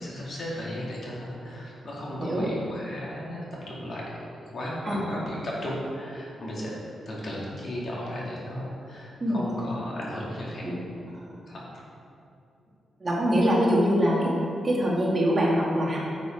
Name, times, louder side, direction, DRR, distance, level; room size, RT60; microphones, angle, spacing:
voice 1, 0.0-4.0 4.5-6.8 7.1-10.7 11.5-11.7, equal, 50° left, -5 dB, 2.3 m, -35 dB
voice 2, 13.0-14.3 14.6-16.0, equal, 30° right, -5 dB, 2.0 m, -23 dB
10.0 x 6.6 x 4.5 m, 2.7 s
wide cardioid pair, 130°, 0 cm